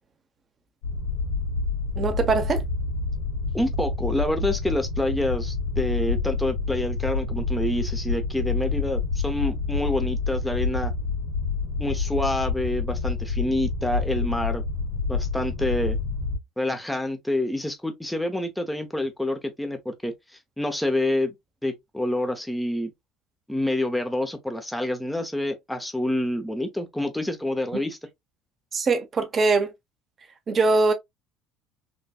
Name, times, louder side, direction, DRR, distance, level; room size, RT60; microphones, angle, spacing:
sound 1, 0.8-16.4, left 4 dB, 80° left, 1.6 m, -28 dB
voice 1, 2.0-2.6 27.7-27.8 28.7-29.7 30.5-30.9, right 3 dB, 40° right, 1.1 m, -22 dB
voice 2, 3.5-10.9 11.8-14.6 15.1-16.0 16.6-20.1 20.6-21.3 21.6-22.9 23.5-28.0, left 1 dB, 5° left, 0.8 m, -27 dB
3.9 x 2.6 x 2.4 m
hypercardioid pair, 75°, 0 cm